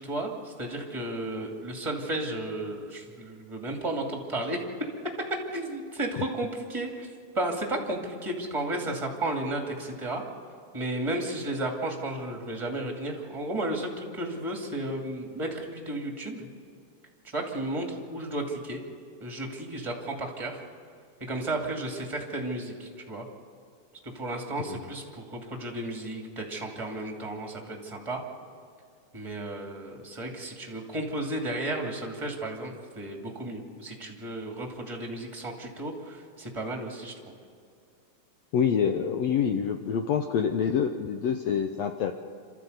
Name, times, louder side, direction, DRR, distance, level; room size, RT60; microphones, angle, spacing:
voice 1, 0.0-4.9 5.3-7.1 7.3-10.2 10.7-16.5 17.3-18.8 19.2-20.6 21.2-23.3 24.0-28.2 29.1-37.1, right 1 dB, 10° right, 1 dB, 2.0 m, -33 dB
voice 2, 38.5-42.1, left 7 dB, 75° left, 6 dB, 1.6 m, -26 dB
27.5 x 13.5 x 8.1 m, 2.2 s
omnidirectional pair, 3.9 m